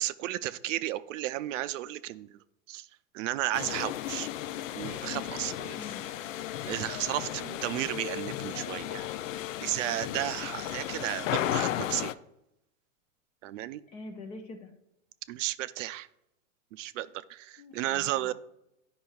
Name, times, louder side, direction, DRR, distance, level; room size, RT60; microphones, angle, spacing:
voice 1, 0.0-2.4 2.7-2.9 3.1-4.3 4.7-5.8 6.6-9.1 9.6-12.1 13.4-13.8 15.3-16.1 16.8-18.3, right 14 dB, 70° right, 15 dB, 0.5 m, -33 dB
sound 1, 3.5-12.1, left 12 dB, 75° left, 0.5 m, -35 dB
voice 2, 5.7-6.1 13.9-14.7 17.6-18.3, left 3 dB, 20° left, 5 dB, 0.3 m, -45 dB
10.5 x 5.4 x 2.3 m, 0.82 s
supercardioid pair, 145°, 39 cm